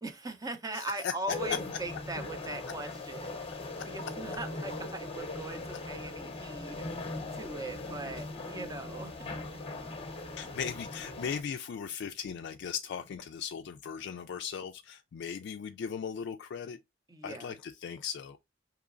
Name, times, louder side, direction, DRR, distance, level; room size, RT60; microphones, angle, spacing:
voice 1, 0.0-9.6 17.1-17.6, right 2 dB, 20° right, 0.5 m, -40 dB
voice 2, 0.7-1.4 10.4-16.8 17.2-18.4, left 7 dB, 60° left, 0.3 m, -38 dB
sound 1, 1.3-11.4, left 2 dB, 30° left, 0.6 m, -40 dB
4.9 x 2.9 x 2.4 m
head